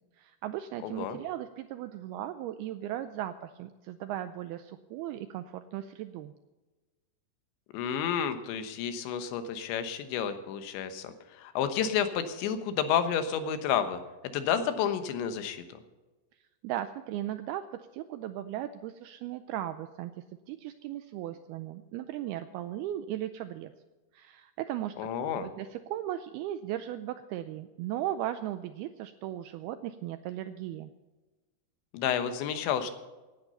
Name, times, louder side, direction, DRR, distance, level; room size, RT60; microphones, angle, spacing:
voice 1, 0.2-6.3 16.6-23.7 24.1-25.1 25.4-30.9, right 12 dB, 85° right, 10 dB, 2.2 m, -37 dB
voice 2, 0.8-1.2 7.7-14.0 14.3-15.6 25.0-25.5 31.9-32.9, left 8 dB, 85° left, 9 dB, 3.5 m, -30 dB
17.0 x 10.5 x 5.6 m, 1.2 s
omnidirectional pair, 5.1 m